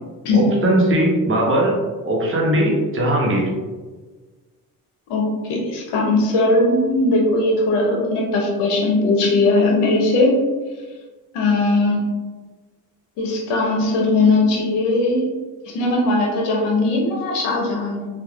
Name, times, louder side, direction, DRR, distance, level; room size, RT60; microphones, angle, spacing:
voice 1, 0.3-1.7 2.0-3.5, right 1 dB, 30° right, -2 dB, 0.9 m, -19 dB
voice 2, 5.1-10.4 11.3-12.0 13.2-15.3 15.7-18.1, left 2 dB, 85° left, -1 dB, 0.8 m, -19 dB
3.4 x 2.3 x 2.3 m, 1.3 s
supercardioid pair, 75°, 41 cm